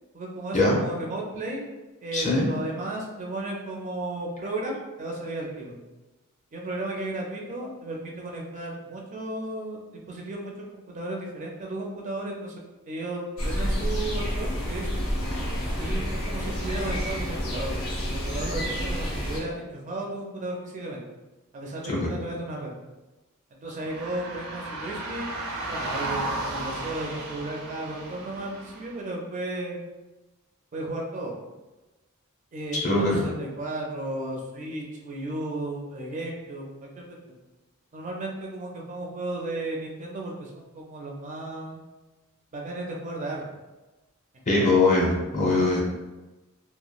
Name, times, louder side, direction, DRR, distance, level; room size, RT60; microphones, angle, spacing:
voice 1, 0.1-1.6 2.0-5.8 6.5-15.0 15.8-17.7 18.0-21.0 21.5-22.7 23.5-25.3 25.7-29.8 30.7-31.3 32.5-37.0 37.9-41.8 42.5-43.4 44.5-44.8, right 2 dB, 35° right, -1 dB, 0.4 m, -34 dB
voice 2, 2.1-2.5 21.9-22.1 32.8-33.2 44.5-45.8, left 2 dB, 35° left, -3 dB, 0.6 m, -22 dB
sound 1, 13.4-19.4, equal, 80° left, 0.7 m, -29 dB
sound 2, 23.8-29.0, right 2 dB, 80° right, 0.6 m, -34 dB
2.9 x 2.2 x 2.3 m, 1.1 s
head